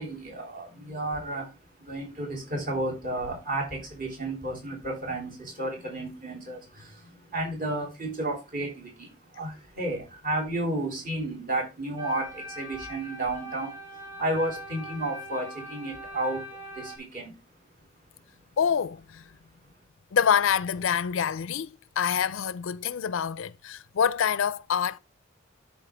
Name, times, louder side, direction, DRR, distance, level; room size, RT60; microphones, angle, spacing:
voice 1, 0.0-18.5 19.5-19.7, right 1 dB, 45° right, 3.0 m, -33 dB
sound 1, 12.0-17.0, equal, 20° right, 2.2 m, -41 dB
voice 2, 18.6-19.2 20.1-25.0, left 7 dB, 80° left, 0.4 m, -26 dB
12.0 x 4.3 x 3.4 m
head